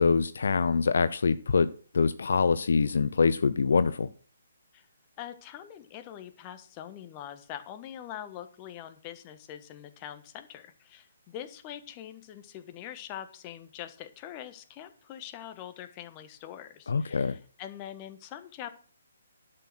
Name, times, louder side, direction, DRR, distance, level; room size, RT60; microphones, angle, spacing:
voice 1, 0.0-1.7 1.9-4.1 16.9-17.4, left 5 dB, 65° left, 14 dB, 0.6 m, -24 dB
voice 2, 5.2-18.7, left 11 dB, 25° left, 9 dB, 1.3 m, -43 dB
11.0 x 6.5 x 6.1 m, 0.43 s
figure-of-eight pair, 140°, 0 cm